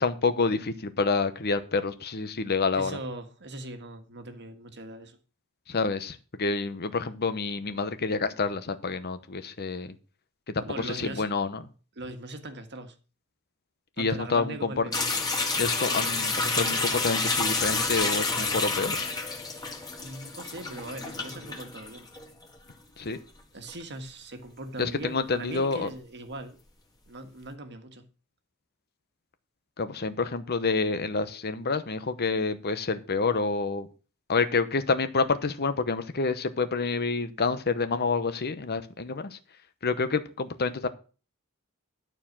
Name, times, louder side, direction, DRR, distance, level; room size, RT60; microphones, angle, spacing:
voice 1, 0.0-3.0 5.7-9.9 10.5-11.6 14.0-14.9 15.6-19.0 23.0-23.2 24.8-25.9 29.8-33.9 34.3-39.4 39.8-40.9, left 4 dB, 45° left, 0.9 m, -28 dB
voice 2, 2.8-5.2 10.6-11.3 11.9-12.9 14.0-15.2 20.0-22.1 23.5-26.6 27.1-28.0, right 2 dB, 55° right, 1.5 m, -40 dB
sound 1, 14.9-22.3 22.7-22.8 23.7-23.8 25.5-25.6, left 3 dB, 20° left, 1.7 m, -29 dB
12.0 x 4.6 x 7.3 m
head